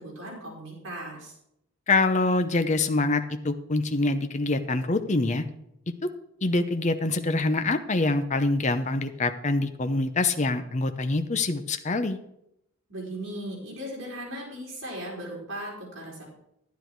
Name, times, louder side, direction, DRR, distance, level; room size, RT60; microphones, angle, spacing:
voice 1, 0.0-1.3 12.9-16.2, right 1 dB, 60° right, -3 dB, 4.6 m, -37 dB
voice 2, 1.9-5.4 6.4-12.2, left 2 dB, 35° left, 9 dB, 0.7 m, -25 dB
10.5 x 10.5 x 4.6 m, 0.80 s
head